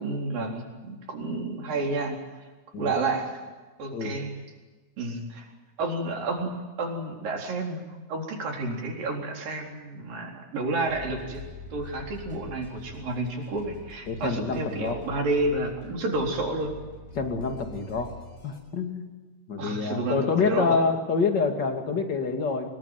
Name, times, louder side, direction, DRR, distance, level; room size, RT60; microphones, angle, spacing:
voice 1, 0.0-2.2 2.8-3.3 3.8-4.3 5.0-5.5 5.8-6.5 6.8-7.8 8.1-11.4 11.7-16.7 19.6-20.2 20.5-20.8, right 2 dB, 85° right, 1 dB, 5.7 m, -30 dB
sound 1, 10.9-18.6, left 2 dB, 15° left, 6.8 m, -45 dB
voice 2, 14.1-15.0 17.1-18.1 18.4-19.1 19.5-22.7, left 4 dB, 35° left, 4 dB, 2.7 m, -27 dB
25.0 x 21.0 x 9.2 m, 1.2 s
omnidirectional pair, 3.9 m